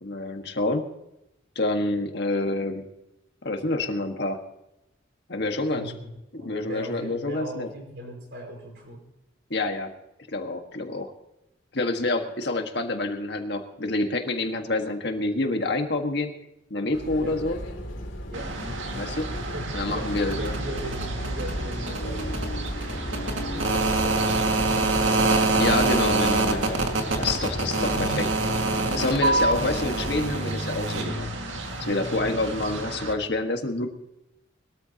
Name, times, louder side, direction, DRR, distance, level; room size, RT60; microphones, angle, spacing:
voice 1, 0.0-0.9 1.5-2.9 3.4-4.4 5.3-5.9 6.3-7.7 9.5-9.9 10.3-11.1 11.7-16.3 16.7-17.6 18.9-19.3 19.7-20.5 25.6-26.8 27.2-28.3 28.9-31.3 31.8-33.9, left 2 dB, 60° left, 5 dB, 1.6 m, -27 dB
voice 2, 5.6-9.0 17.2-17.4 18.3-18.5 19.5-22.5 23.3-25.4 32.2-32.5, right 1 dB, 60° right, 2 dB, 5.2 m, -39 dB
sound 1, 16.9-30.3, equal, 80° left, 2.9 m, -34 dB
sound 2, 18.3-33.1, right 3 dB, 75° right, 2.0 m, -27 dB
21.5 x 13.5 x 2.9 m, 0.89 s
head